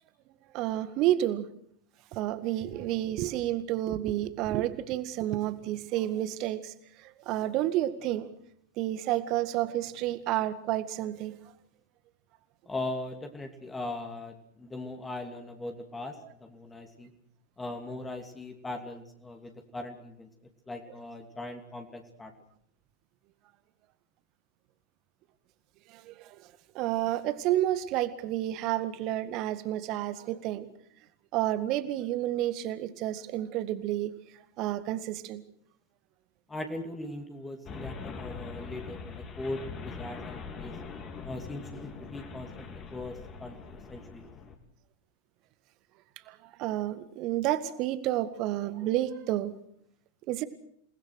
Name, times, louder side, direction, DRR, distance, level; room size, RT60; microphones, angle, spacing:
voice 1, 0.5-1.5 2.1-6.7 7.0-8.3 8.8-11.3 25.9-26.5 26.7-30.7 31.3-34.1 34.6-35.4 46.3-49.5 50.3-50.4, right 13 dB, 40° right, 13 dB, 1.8 m, -30 dB
voice 2, 12.7-17.1 17.6-20.3 20.7-22.3 36.5-40.7 41.2-44.3, left 2 dB, 10° left, 4 dB, 2.8 m, -39 dB
sound 1, 37.7-44.6, left 5 dB, 30° left, 3.9 m, -42 dB
28.5 x 20.0 x 6.5 m, 0.67 s
figure-of-eight pair, 90°, 0 cm